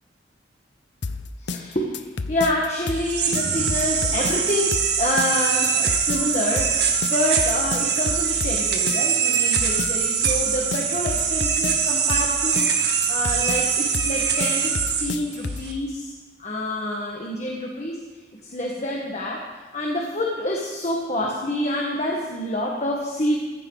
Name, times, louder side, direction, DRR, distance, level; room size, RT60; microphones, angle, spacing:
sound 1, 1.0-15.7, left 3 dB, 85° left, 0.7 m, -31 dB
voice 1, 1.4-16.1 16.4-18.0 18.3-23.4, left 1 dB, 40° left, -1 dB, 1.7 m, -27 dB
sound 2, 2.9-15.7, right 7 dB, 65° right, 1.7 m, -23 dB
15.0 x 15.0 x 4.1 m, 1.3 s
head